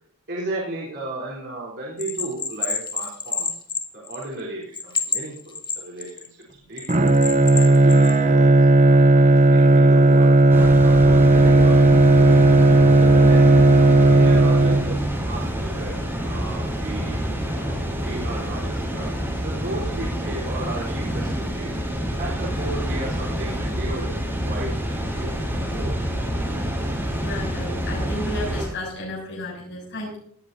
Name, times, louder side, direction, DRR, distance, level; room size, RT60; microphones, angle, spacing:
voice 1, 0.3-3.5 3.9-7.0 7.5-12.4 12.7-13.4 14.0-21.8 22.2-26.0, right 2 dB, 50° right, -4 dB, 3.8 m, -35 dB
Bell, 2.0-4.4 4.7-6.3 6.8-8.2, left 5 dB, 20° left, 1.4 m, -28 dB
Bowed string instrument, 6.9-15.2, right 2 dB, 30° right, 0.8 m, -14 dB
Water, 10.5-28.7, equal, 10° right, 4.3 m, -27 dB
voice 2, 27.1-30.2, left 1 dB, 55° left, -4 dB, 7.4 m, -33 dB
18.5 x 14.0 x 2.7 m, 0.64 s
head